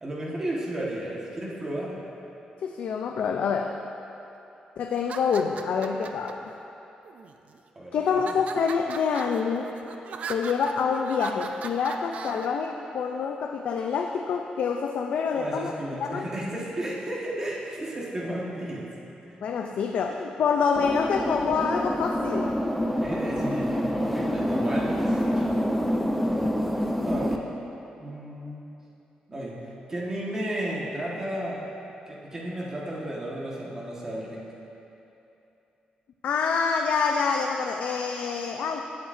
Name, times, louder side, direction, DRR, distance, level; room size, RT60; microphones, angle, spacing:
voice 1, 0.0-2.0 7.7-8.2 15.3-18.9 19.2-19.3 23.0-25.6 27.0-27.5 28.0-28.6 29.3-29.6 29.9-31.7 32.1-34.4, right 1 dB, 25° right, -4 dB, 1.4 m, -33 dB
voice 2, 2.6-3.7 4.8-6.5 7.9-9.8 10.3-15.7 16.0-16.2 19.4-22.5 36.2-38.8, left 5 dB, 65° left, 3 dB, 0.4 m, -26 dB
sound 1, 4.9-6.3 7.0-7.6 8.1-12.5, right 5 dB, 60° right, 0.5 m, -39 dB
sound 2, 20.8-27.4, equal, ahead, 0.5 m, -26 dB
17.0 x 7.9 x 2.6 m, 2.9 s
wide cardioid pair, 180°, 3 cm